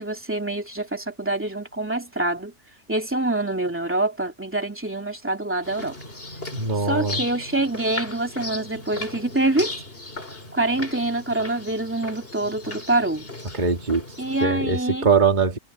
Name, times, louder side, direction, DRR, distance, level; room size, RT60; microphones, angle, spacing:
voice 1, 0.0-2.5 2.9-6.0 6.8-9.8 10.5-13.3 14.2-15.1, right 2 dB, 10° right, 2.7 m, -25 dB
sound 1, 5.6-14.4, left 2 dB, 40° left, 3.9 m, -37 dB
voice 2, 6.5-7.2 13.5-14.0 14.4-15.6, right 5 dB, 30° right, 2.3 m, -21 dB
omnidirectional pair, 1.5 m